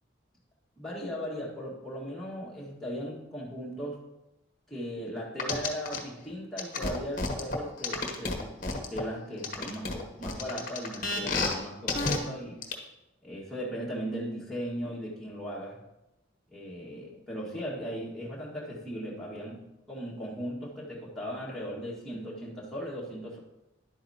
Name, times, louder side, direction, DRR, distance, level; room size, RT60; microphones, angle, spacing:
voice 1, 0.8-4.0 4.7-12.6 13.2-15.8 16.5-19.6 19.9-23.4, equal, ahead, -6 dB, 1.8 m, -37 dB
sound 1, 5.4-6.0 6.6-9.0 9.4-11.5 11.9-12.2 12.6-12.7, left 3 dB, 40° left, 1.1 m, -30 dB
10.5 x 8.3 x 2.9 m, 0.92 s
head